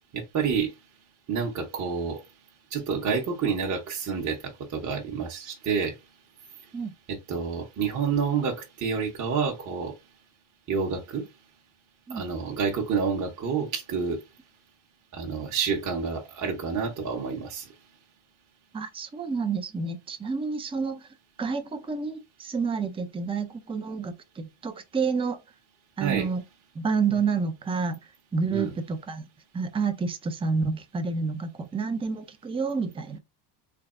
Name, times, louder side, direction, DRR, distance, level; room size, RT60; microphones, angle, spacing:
voice 1, 0.1-0.7 1.3-2.2 2.7-5.9 7.1-9.9 10.7-11.2 12.1-14.2 15.1-17.7 26.0-26.3 28.5-28.7, right 6 dB, 40° right, 0.9 m, -28 dB
voice 2, 18.7-21.1 21.4-25.4 26.0-26.4 26.8-28.0 28.3-29.2 29.5-33.2, right 5 dB, 10° right, 0.4 m, -29 dB
3.7 x 3.4 x 2.5 m
cardioid pair, 120°, 48 cm